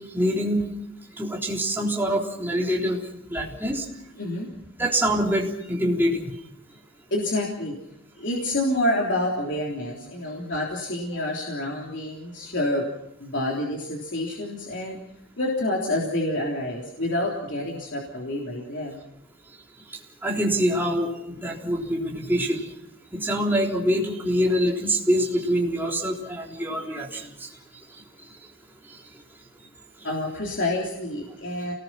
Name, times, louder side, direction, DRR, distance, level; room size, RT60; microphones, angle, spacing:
voice 1, 0.1-0.7 1.2-3.8 4.8-6.3 20.2-22.7 23.1-27.5, equal, 10° right, -2 dB, 3.7 m, -25 dB
voice 2, 4.2-4.5 7.1-7.7 8.2-12.9 13.2-15.0 15.4-19.0 30.0-31.7, left 1 dB, 60° left, -2 dB, 3.5 m, -28 dB
29.0 x 19.5 x 5.9 m, 0.78 s
head